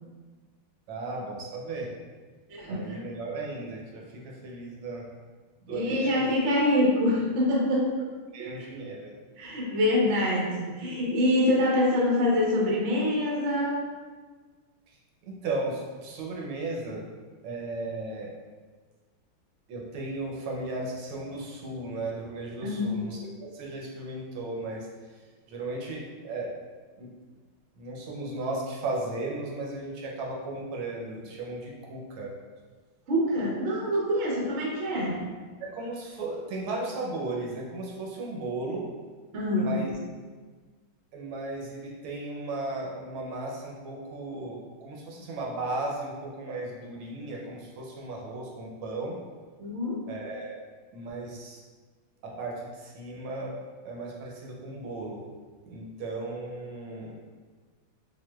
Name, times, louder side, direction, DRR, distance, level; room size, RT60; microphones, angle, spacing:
voice 1, 0.9-1.9 2.7-5.0 5.6-6.3 8.3-9.2 15.2-17.0 17.4-18.3 19.7-24.9 25.5-26.5 27.0-27.1 27.8-32.3 35.6-38.8 39.6-39.9 41.1-49.2 50.1-50.6 50.9-51.6 52.2-53.5 53.8-55.2 55.6-57.1, right 2 dB, 75° right, -2 dB, 1.5 m, -35 dB
voice 2, 2.5-3.0 5.7-7.9 8.4-8.5 9.4-13.8 22.6-23.0 33.1-35.2 39.3-39.7 49.6-50.0, left 1 dB, 60° right, -4 dB, 0.7 m, -25 dB
6.2 x 2.2 x 2.3 m, 1.4 s
omnidirectional pair, 2.3 m